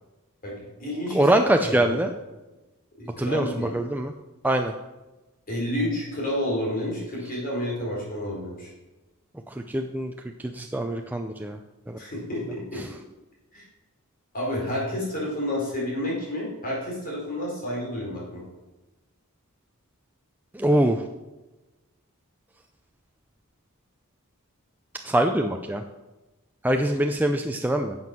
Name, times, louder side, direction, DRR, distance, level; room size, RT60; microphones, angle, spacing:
voice 1, 0.4-1.3 1.6-2.0 3.0-3.7 5.5-8.7 12.0-12.8 13.5-13.6 14.3-18.4, left 1 dB, 40° left, -4 dB, 4.3 m, -30 dB
voice 2, 1.1-2.1 3.2-3.5 3.7-4.1 4.4-4.7 9.7-10.1 10.4-11.6 11.9-12.0 20.5-21.1 25.0-25.8 26.6-28.0, right 1 dB, 10° right, 4 dB, 0.5 m, -23 dB
11.0 x 7.7 x 6.0 m, 1.1 s
head